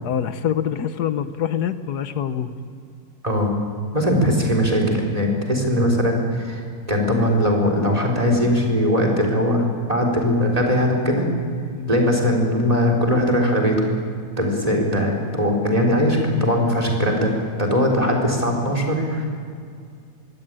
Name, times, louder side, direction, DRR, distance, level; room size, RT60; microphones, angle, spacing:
voice 1, 0.0-2.5 11.7-11.9 14.8-14.9, left 9 dB, 85° left, 11 dB, 1.5 m, -25 dB
voice 2, 3.9-11.3 11.9-13.8 14.4-17.3 17.6-19.3, equal, 25° right, 1 dB, 3.9 m, -20 dB
23.5 x 16.5 x 9.0 m, 2.3 s
omnidirectional pair, 1.7 m